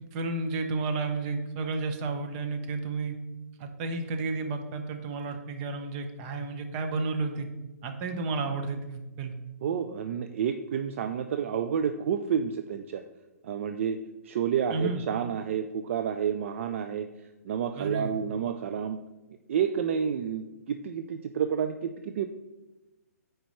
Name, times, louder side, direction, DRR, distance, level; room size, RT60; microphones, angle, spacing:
voice 1, 0.1-3.2 3.6-7.5 7.8-9.3 14.7-15.0 17.8-18.1, right 3 dB, 35° right, 6 dB, 0.8 m, -32 dB
voice 2, 9.6-13.0 13.4-14.0 14.2-17.1 17.4-19.0 19.5-22.2, right 8 dB, 50° right, 8 dB, 0.4 m, -29 dB
8.9 x 4.7 x 3.1 m, 1.1 s
hypercardioid pair, 130°, 9 cm